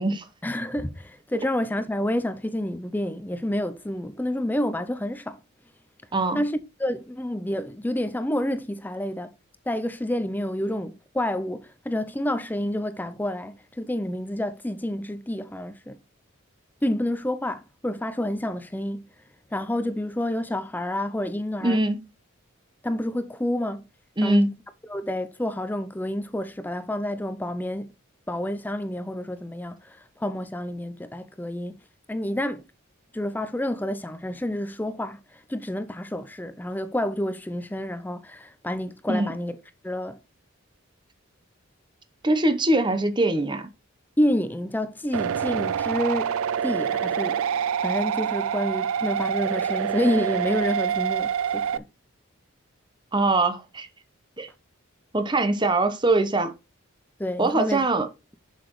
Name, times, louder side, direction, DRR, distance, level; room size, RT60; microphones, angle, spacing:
voice 1, 0.4-5.4 6.3-9.3 9.7-16.0 16.8-19.1 19.5-21.8 22.8-23.9 24.2-24.6 24.9-27.9 28.3-31.8 32.1-32.6 33.1-39.5 39.8-40.2 44.2-51.8 57.2-57.9, left 1 dB, 10° left, 0.4 m, -29 dB
voice 2, 21.6-22.0 24.2-24.5 39.1-39.3 42.2-43.7 53.1-53.9 54.4-54.5 55.1-56.5 57.4-58.1, right 2 dB, 20° right, 0.9 m, -22 dB
sound 1, 45.1-51.8, right 8 dB, 80° right, 0.4 m, -26 dB
7.5 x 6.8 x 3.1 m
head